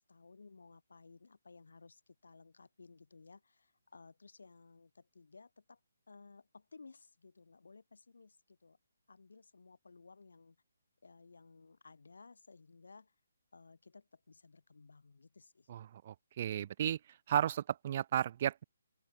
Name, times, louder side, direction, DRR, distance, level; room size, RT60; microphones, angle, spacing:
voice 1, 0.0-5.8 6.1-8.8 9.1-10.6 11.0-13.1 13.5-15.7, left 4 dB, 80° left, 4.9 m, -58 dB
voice 2, 16.1-17.0 17.3-18.6, right 10 dB, 40° right, 0.3 m, -33 dB
open air
hypercardioid pair, 155°, 0 cm